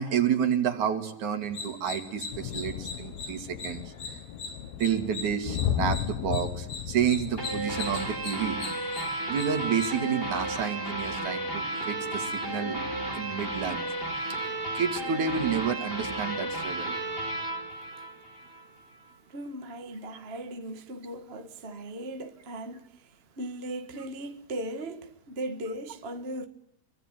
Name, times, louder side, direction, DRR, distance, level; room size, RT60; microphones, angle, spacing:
voice 1, 0.0-3.9 4.8-8.9 9.3-12.8 13.2-13.9 14.3-14.4 14.7-17.0, right 8 dB, 55° right, 3.6 m, -30 dB
sound 1, 1.4-9.9, left 4 dB, 55° left, 7.8 m, -40 dB
sound 2, 2.3-8.5, left 9 dB, 80° left, 3.2 m, -35 dB
sound 3, 7.4-18.6, right 1 dB, 15° left, 4.1 m, -33 dB
voice 2, 19.3-26.5, right 1 dB, 35° right, 0.9 m, -38 dB
25.5 x 25.0 x 9.2 m
omnidirectional pair, 4.4 m